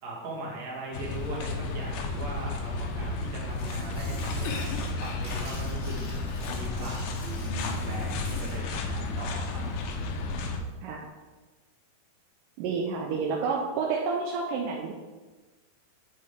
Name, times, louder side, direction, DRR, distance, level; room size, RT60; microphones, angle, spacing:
voice 1, 0.0-6.2 6.5-9.6, right 1 dB, 55° right, -3 dB, 2.5 m, -39 dB
sound 1, 0.9-10.6, left 2 dB, 80° left, 2.0 m, -32 dB
Tearing, 3.5-8.6, left 1 dB, 55° left, 0.5 m, -43 dB
voice 2, 12.6-14.9, right 5 dB, 80° right, 0 dB, 2.1 m, -29 dB
9.6 x 4.6 x 3.6 m, 1.2 s
omnidirectional pair, 4.4 m